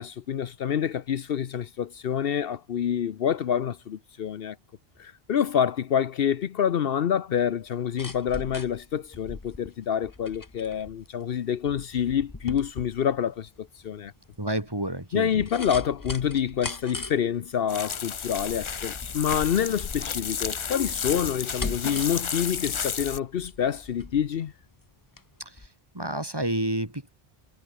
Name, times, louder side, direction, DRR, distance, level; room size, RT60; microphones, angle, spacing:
voice 1, 0.0-4.6 5.0-14.1 15.1-24.5, left 8 dB, 70° left, 0.9 m, -27 dB
sound 1, 7.6-25.3 25.6-25.7, left 2 dB, 20° left, 1.0 m, -41 dB
voice 2, 14.4-15.4 25.4-25.7 25.9-27.1, right 1 dB, 25° right, 2.8 m, -30 dB
sound 2, 17.7-23.2, left 6 dB, 40° left, 0.5 m, -32 dB
omnidirectional pair, 1.0 m